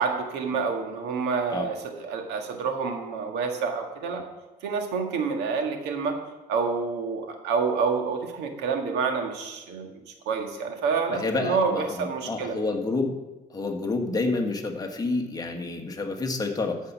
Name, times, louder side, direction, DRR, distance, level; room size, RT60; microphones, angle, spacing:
voice 1, 0.0-4.2 4.6-6.2 6.5-12.6, right 5 dB, 90° right, 3 dB, 1.7 m, -28 dB
voice 2, 11.1-13.1 13.5-16.8, left 3 dB, 20° left, 3 dB, 1.6 m, -29 dB
13.5 x 5.6 x 6.1 m, 1.1 s
cardioid pair, 110°, 17 cm